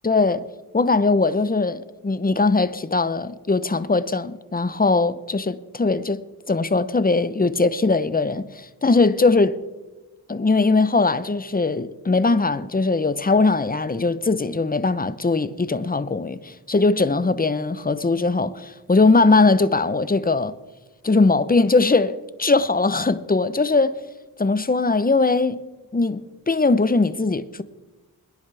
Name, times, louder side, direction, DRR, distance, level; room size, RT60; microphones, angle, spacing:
voice 1, 0.0-0.5 0.7-6.2 6.5-9.6 10.3-20.5 21.0-24.0 24.4-25.6 25.9-27.6, left 3 dB, 25° left, 0.8 m, -20 dB
22.5 x 10.5 x 3.4 m
cardioid pair, 40°, 39 cm